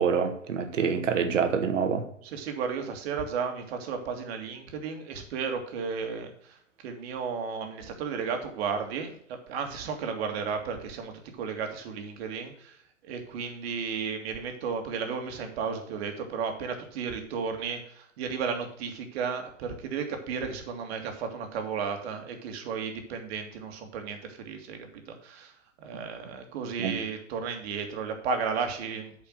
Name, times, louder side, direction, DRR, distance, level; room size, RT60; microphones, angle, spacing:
voice 1, 0.0-2.0 26.8-27.0, right 6 dB, 75° right, 7 dB, 1.6 m, -26 dB
voice 2, 2.3-6.6 6.8-9.1 9.5-12.8 13.0-25.5 25.8-29.1, right 6 dB, 55° right, 5 dB, 2.2 m, -33 dB
8.3 x 5.2 x 6.4 m, 0.65 s
hypercardioid pair, 110°, 38 cm